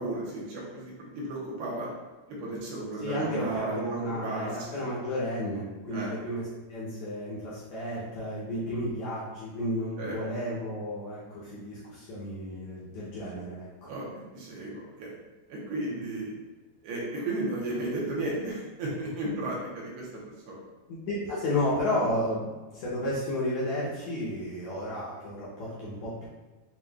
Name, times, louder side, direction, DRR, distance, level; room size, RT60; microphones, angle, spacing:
voice 1, 0.0-1.9 2.4-4.8 5.9-6.1 10.0-10.2 13.9-15.1 15.5-16.3 16.8-20.2 20.5-20.6, right 2 dB, 80° right, -5 dB, 2.8 m, -34 dB
voice 2, 3.0-13.9 20.9-26.3, left 1 dB, 80° left, -8 dB, 1.6 m, -32 dB
7.2 x 2.5 x 2.3 m, 1.2 s
omnidirectional pair, 4.3 m